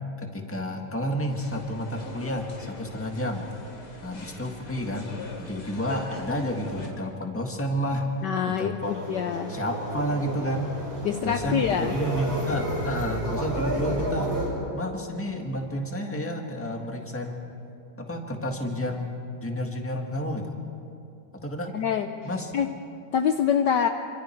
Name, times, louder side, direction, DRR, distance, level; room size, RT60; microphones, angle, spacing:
voice 1, 0.2-3.5 4.0-5.1 5.4-8.2 8.5-8.9 9.5-10.7 11.2-14.4 14.7-17.4 18.0-19.2 19.4-20.5 21.4-21.7 22.2-22.5, equal, 5° left, 2 dB, 1.6 m, -30 dB
sound 1, 1.3-6.9, left 2 dB, 90° left, 3.5 m, -42 dB
voice 2, 8.2-9.5 11.0-11.9 21.7-22.1 22.5-22.7 23.1-23.9, left 8 dB, 65° left, 7 dB, 1.2 m, -25 dB
sound 2, 8.8-14.5, right 1 dB, 10° right, 6.4 m, -31 dB
26.5 x 25.0 x 4.6 m, 2.5 s
omnidirectional pair, 2.3 m